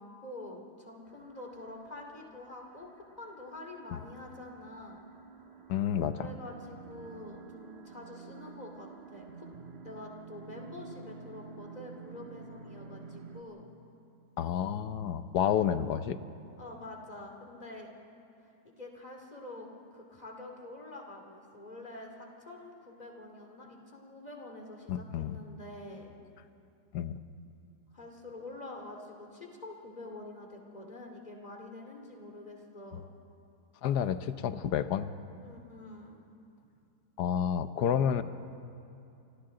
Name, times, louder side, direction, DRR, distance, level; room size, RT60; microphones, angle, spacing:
voice 1, 0.0-2.9 3.2-5.0 6.1-9.5 9.8-13.6 16.6-17.9 18.6-26.1 27.9-33.0 35.4-36.2, left 2 dB, 25° left, 1 dB, 2.5 m, -46 dB
sound 1, 1.1-13.4, right 5 dB, 40° right, 1.5 m, -50 dB
voice 2, 5.7-6.3 14.4-16.2 24.9-25.4 26.9-27.1 33.8-35.1 37.2-38.2, left 9 dB, 70° left, 12 dB, 1.3 m, -30 dB
29.0 x 25.5 x 3.8 m, 2.7 s
omnidirectional pair, 1.9 m